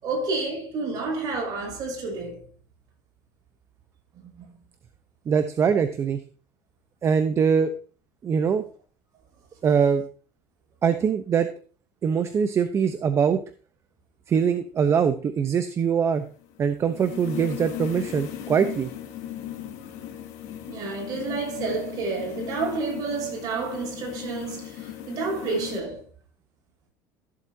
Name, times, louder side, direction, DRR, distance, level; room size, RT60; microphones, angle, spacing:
voice 1, 0.0-2.5 4.1-4.4 20.7-26.0, right 3 dB, 50° right, 6.4 m, -30 dB
voice 2, 5.3-6.2 7.0-7.7 8.2-8.6 9.6-10.0 10.8-11.5 12.0-13.4 14.3-16.2 16.6-18.9, right 7 dB, 35° right, 0.8 m, -22 dB
sound 1, 16.1-25.8, left 11 dB, 80° left, 2.8 m, -37 dB
15.0 x 7.7 x 2.8 m
supercardioid pair, 115°, 8 cm